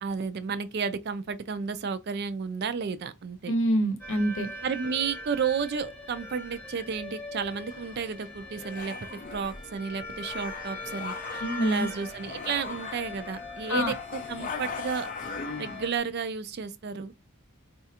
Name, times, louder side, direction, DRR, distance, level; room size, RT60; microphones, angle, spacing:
voice 1, 0.0-3.5 4.6-13.9 14.3-15.1 15.6-17.2, right 6 dB, 50° right, 0.3 m, -32 dB
voice 2, 3.5-4.5 11.4-11.9 13.7-13.9, equal, 60° left, 0.7 m, -26 dB
sound 1, 4.0-16.0, left 2 dB, 10° left, 0.7 m, -41 dB
sound 2, 7.7-15.9, left 4 dB, 35° left, 0.4 m, -40 dB
4.1 x 2.4 x 2.8 m
head